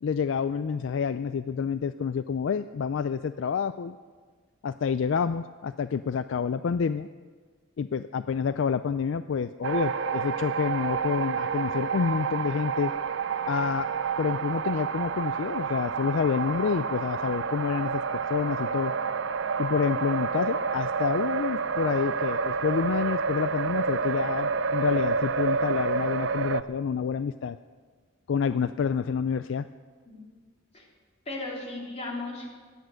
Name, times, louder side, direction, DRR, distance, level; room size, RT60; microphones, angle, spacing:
voice 1, 0.0-4.0 4.6-7.1 7.8-12.9 13.5-13.9 14.2-18.9 19.6-27.6 28.3-29.7, left 6 dB, 65° left, 12 dB, 0.4 m, -28 dB
sound 1, 9.6-26.6, right 5 dB, 65° right, 0.5 m, -29 dB
voice 2, 31.3-32.5, left 2 dB, 35° left, -2 dB, 3.3 m, -36 dB
17.0 x 12.0 x 6.4 m, 1.6 s
head